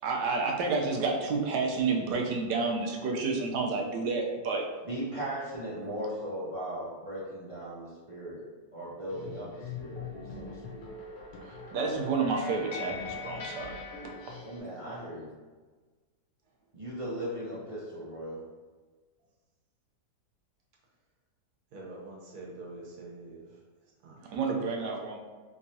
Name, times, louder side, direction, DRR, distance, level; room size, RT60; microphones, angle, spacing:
voice 1, 0.0-4.7 11.4-13.8 14.3-14.4 14.8-14.9 24.2-25.2, right 4 dB, 85° right, 0 dB, 1.3 m, -30 dB
voice 2, 4.9-8.4 8.7-10.8 14.4-15.3 16.7-18.4, right 1 dB, 45° right, -9 dB, 0.4 m, -38 dB
sound 1, 9.1-14.6, left 4 dB, 65° left, 1.1 m, -41 dB
voice 3, 21.7-23.5 24.0-24.4, right 2 dB, 70° right, -3 dB, 1.3 m, -45 dB
3.5 x 3.0 x 2.7 m, 1.4 s
omnidirectional pair, 1.8 m